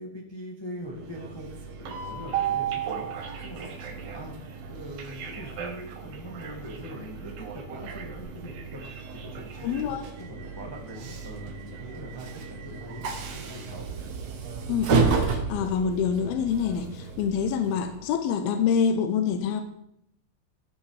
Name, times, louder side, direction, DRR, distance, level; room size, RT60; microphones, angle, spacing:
voice 1, 0.0-4.3 4.7-13.9, equal, 20° left, -2 dB, 0.6 m, -42 dB
Train, 0.8-18.1, right 6 dB, 65° right, 1.7 m, -33 dB
voice 2, 9.6-10.0 14.7-19.6, left 7 dB, 75° left, 7 dB, 2.7 m, -26 dB
15.5 x 6.2 x 4.9 m, 0.76 s
omnidirectional pair, 4.6 m